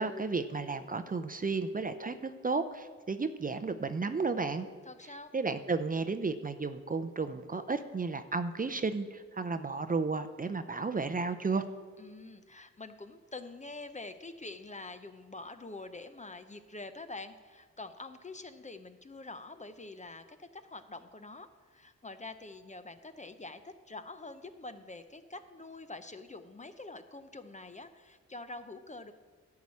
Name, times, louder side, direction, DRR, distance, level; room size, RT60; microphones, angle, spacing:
voice 1, 0.0-4.7 5.3-11.6, right 4 dB, 30° right, 9 dB, 0.6 m, -33 dB
voice 2, 4.8-5.3 12.0-29.1, left 2 dB, 25° left, 10 dB, 0.7 m, -46 dB
11.0 x 4.8 x 8.4 m, 1.5 s
cardioid pair, 55°, 29 cm